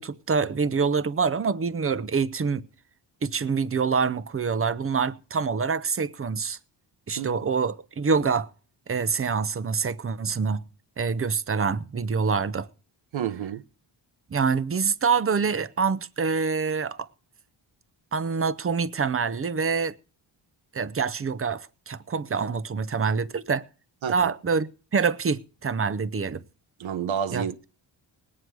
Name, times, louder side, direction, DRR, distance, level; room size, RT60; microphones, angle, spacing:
voice 1, 0.0-2.6 3.2-6.6 7.1-8.5 8.9-10.6 11.0-12.7 14.3-17.1 18.1-19.9 20.7-23.6 24.1-26.4 27.3-27.5, right 5 dB, 30° right, 0.6 m, -26 dB
voice 2, 13.1-13.6 24.0-24.2 26.8-27.6, right 8 dB, 75° right, 0.9 m, -29 dB
19.5 x 9.3 x 4.7 m
wide cardioid pair, 140°, 47 cm